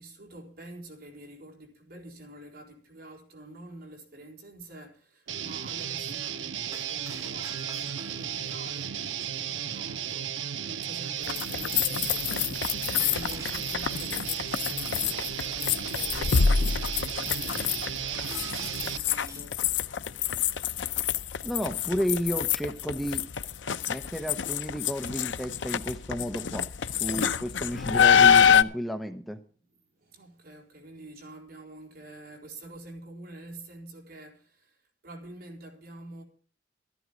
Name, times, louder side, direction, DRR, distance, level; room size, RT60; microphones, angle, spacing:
voice 1, 0.0-19.6 29.9-36.2, right 1 dB, 55° right, 4.5 m, -47 dB
Guitar, 5.3-19.0, right 9 dB, 80° right, 0.8 m, -34 dB
Shatter, 6.7-8.4 13.0-14.0 18.3-19.6, right 2 dB, 20° right, 2.7 m, -46 dB
sound 1, 11.2-28.6, left 7 dB, 75° left, 0.6 m, -26 dB
voice 2, 21.4-23.2 23.9-26.7 27.0-29.4, equal, ahead, 0.9 m, -32 dB
13.0 x 11.5 x 5.1 m
head